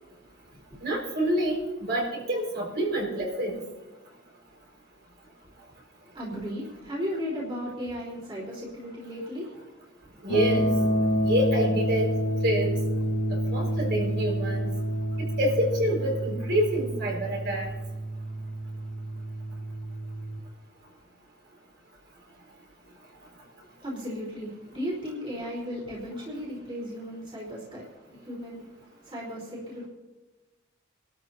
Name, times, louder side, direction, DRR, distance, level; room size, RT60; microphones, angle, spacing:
voice 1, 0.8-1.6 1.9-3.6 10.2-10.7 11.2-12.1 12.4-12.7 13.3-14.7 15.4-17.7, right 1 dB, 60° right, -2 dB, 4.9 m, -27 dB
voice 2, 6.1-9.6 10.1-10.3 23.8-28.7 29.0-29.9, equal, 25° right, -5 dB, 3.9 m, -35 dB
sound 1, 10.3-20.4, equal, 70° left, 2.0 m, -28 dB
26.0 x 13.0 x 2.8 m, 1.1 s
head